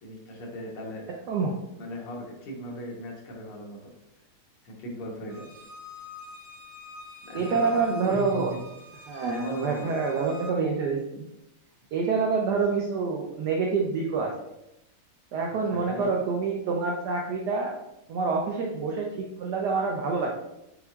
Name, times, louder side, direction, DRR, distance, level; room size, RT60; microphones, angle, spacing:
voice 1, 0.0-1.1 1.8-3.9 4.6-5.5 7.2-7.6 7.9-8.6 9.1-9.9 15.5-16.2, equal, 85° left, -1 dB, 1.9 m, -38 dB
voice 2, 1.3-1.6 7.3-8.5 9.1-11.3 11.9-14.3 15.3-17.8 18.1-20.4, right 4 dB, 85° right, 0 dB, 0.9 m, -27 dB
Bowed string instrument, 5.3-10.5, left 2 dB, 40° right, 2.1 m, -46 dB
6.0 x 3.4 x 2.3 m, 0.88 s
omnidirectional pair, 2.4 m